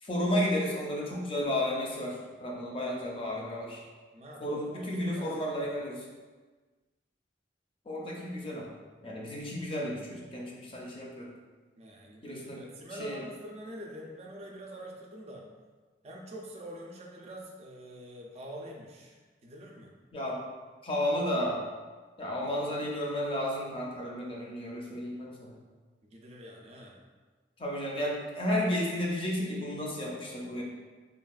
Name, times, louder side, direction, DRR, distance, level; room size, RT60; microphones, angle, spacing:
voice 1, 0.0-3.8 4.4-5.9 7.9-8.7 9.0-11.3 12.2-12.6 13.0-13.2 20.1-20.4 20.8-21.6 22.2-25.5 27.6-30.6, left 1 dB, 30° left, -3 dB, 0.5 m, -32 dB
voice 2, 4.1-5.9 11.8-15.4 16.0-19.9 26.0-27.0, equal, 35° right, -1 dB, 0.4 m, -45 dB
3.5 x 2.3 x 2.3 m, 1.4 s
head